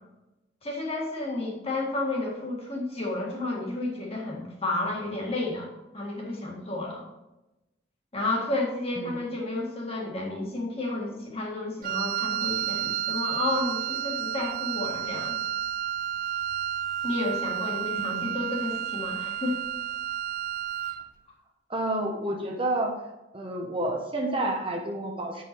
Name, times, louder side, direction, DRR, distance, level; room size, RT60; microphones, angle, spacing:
voice 1, 0.6-5.7 5.9-7.0 8.1-15.4 17.0-19.6, left 2 dB, 35° left, -2 dB, 1.8 m, -31 dB
voice 2, 9.0-9.3 18.0-18.3 21.7-22.9 23.3-25.4, right 1 dB, 30° right, 1 dB, 0.9 m, -30 dB
Wind instrument woodwind instrument, 11.8-21.1, right 10 dB, 50° right, 0.3 m, -31 dB
8.1 x 5.5 x 4.4 m, 0.99 s
head